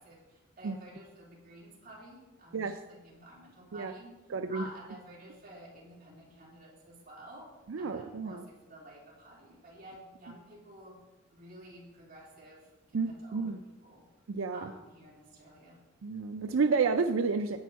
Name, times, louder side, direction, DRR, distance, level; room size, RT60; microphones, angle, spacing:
voice 1, 0.0-4.1 4.5-7.5 7.8-11.0 11.3-13.5 13.8-14.0 14.5-15.8, right 1 dB, 45° right, -6 dB, 3.7 m, -51 dB
voice 2, 4.3-4.6 7.7-8.4 12.9-13.6 14.3-14.7 16.0-17.6, right 4 dB, 85° right, 7 dB, 0.5 m, -30 dB
10.5 x 8.2 x 4.7 m, 1.1 s
head